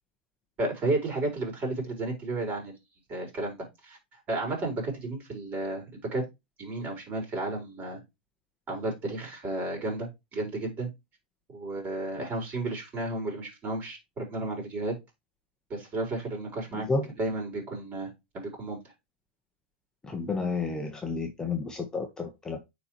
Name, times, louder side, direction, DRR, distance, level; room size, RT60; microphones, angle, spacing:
voice 1, 0.6-2.7 3.1-3.6 3.8-4.0 4.3-6.2 6.6-8.0 8.7-10.9 11.5-14.9 15.7-16.9 17.2-18.8, right 2 dB, 25° right, 4.6 m, -32 dB
voice 2, 16.7-17.1 20.0-22.6, left 4 dB, 10° left, 1.0 m, -31 dB
9.8 x 4.1 x 3.0 m
hypercardioid pair, 125°, 6 cm